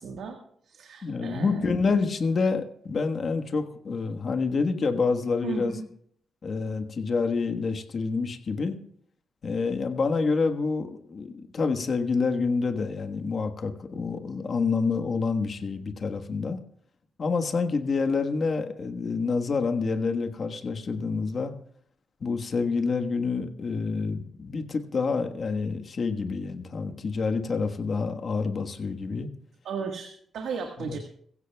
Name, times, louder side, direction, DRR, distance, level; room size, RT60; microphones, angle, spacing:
voice 1, 0.0-1.7 5.4-5.8 29.6-31.0, right 5 dB, 80° right, 3 dB, 1.6 m, -35 dB
voice 2, 1.0-5.8 6.4-8.8 9.4-16.6 17.2-21.5 22.2-29.3 30.8-30.9, left 4 dB, 45° left, 5 dB, 1.4 m, -27 dB
22.0 x 16.0 x 2.3 m, 0.63 s
cardioid pair, 120°, 0 cm